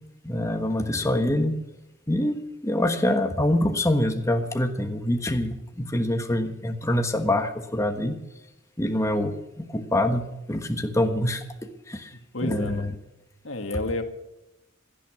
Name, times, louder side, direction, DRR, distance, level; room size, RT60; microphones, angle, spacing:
voice 1, 0.2-1.6 2.1-8.2 8.8-11.4 11.9-12.9, left 1 dB, 15° left, 6 dB, 1.3 m, -25 dB
voice 2, 12.3-12.8 13.4-14.0, left 2 dB, 85° left, 7 dB, 1.9 m, -30 dB
17.5 x 12.0 x 6.0 m, 0.94 s
head